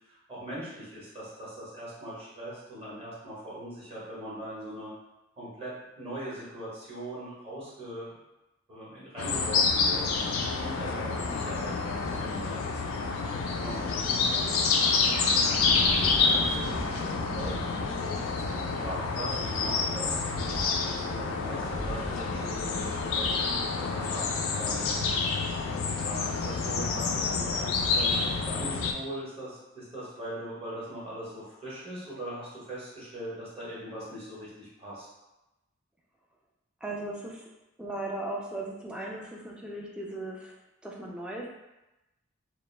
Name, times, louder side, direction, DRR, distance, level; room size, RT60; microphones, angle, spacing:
voice 1, 0.1-4.9 5.4-5.7 6.0-8.1 8.7-10.3 10.6-12.6 13.6-14.0 15.6-15.9 16.2-18.2 18.7-23.3 23.8-24.9 26.0-35.1, equal, 30° right, -8 dB, 0.9 m, -40 dB
sound 1, 9.2-28.9, left 4 dB, 75° left, 0.3 m, -28 dB
voice 2, 13.5-14.6 16.2-16.4 17.3-17.6 26.7-27.1 36.8-37.5 37.8-40.5 40.8-41.5, right 1 dB, 5° right, -2 dB, 0.3 m, -39 dB
Thunder, 15.0-24.3, equal, 55° right, 0.6 m, -40 dB
2.4 x 2.1 x 3.1 m, 0.98 s
head